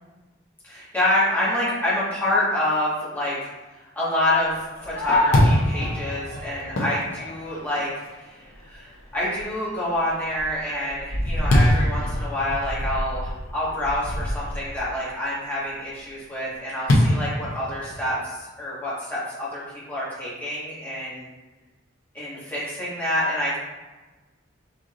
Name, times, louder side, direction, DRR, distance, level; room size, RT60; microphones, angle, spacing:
voice 1, 0.6-3.5 3.9-19.6 19.9-21.3 22.1-23.6, left 1 dB, 10° left, -9 dB, 1.4 m, -27 dB
Fireworks, 4.5-8.0 8.5-8.6 9.1-9.5 9.9-14.8 16.9-18.2, left 1 dB, 85° left, 0.8 m, -24 dB
4.6 x 3.8 x 2.5 m, 1.2 s
head